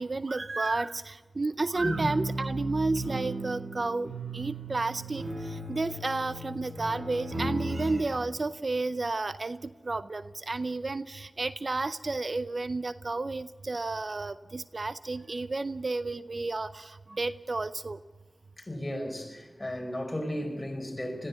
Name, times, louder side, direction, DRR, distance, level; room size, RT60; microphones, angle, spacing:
voice 1, 0.0-18.0, right 3 dB, 55° right, 0.6 m, -32 dB
sound 1, 1.7-8.0, right 1 dB, 75° right, 7.8 m, -35 dB
voice 2, 18.6-21.3, left 1 dB, 25° left, 5.1 m, -34 dB
21.0 x 15.0 x 8.3 m
cardioid pair, 45°, 0 cm